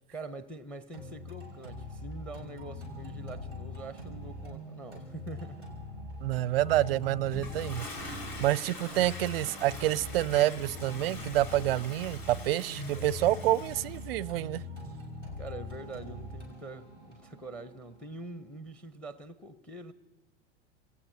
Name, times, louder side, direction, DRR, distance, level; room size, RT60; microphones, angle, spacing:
voice 1, 0.1-5.7 8.1-8.5 15.4-19.9, right 2 dB, 5° left, 0.8 m, -44 dB
sound 1, 0.9-18.9, left 2 dB, 90° left, 5.6 m, -43 dB
voice 2, 6.2-14.6, right 15 dB, 55° right, 0.4 m, -28 dB
Toilet flush, 7.3-14.1, left 2 dB, 50° left, 4.9 m, -43 dB
29.0 x 18.0 x 2.8 m
figure-of-eight pair, 90°, 36 cm